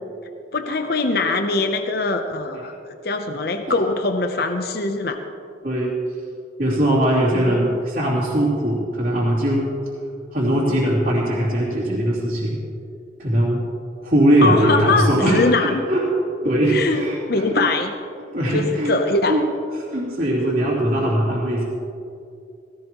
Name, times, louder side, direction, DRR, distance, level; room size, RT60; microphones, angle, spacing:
voice 1, 0.5-2.8 3.0-5.2 7.4-7.8 14.4-15.8 16.7-17.9 18.5-19.4, left 3 dB, 55° left, 6 dB, 0.7 m, -22 dB
voice 2, 5.6-6.0 6.6-9.7 10.3-12.6 13.2-13.6 14.0-16.0 16.4-17.7 18.3-18.9 19.3-19.4 19.9-21.6, right 1 dB, 50° right, -9 dB, 3.0 m, -20 dB
17.0 x 17.0 x 3.0 m, 2.6 s
head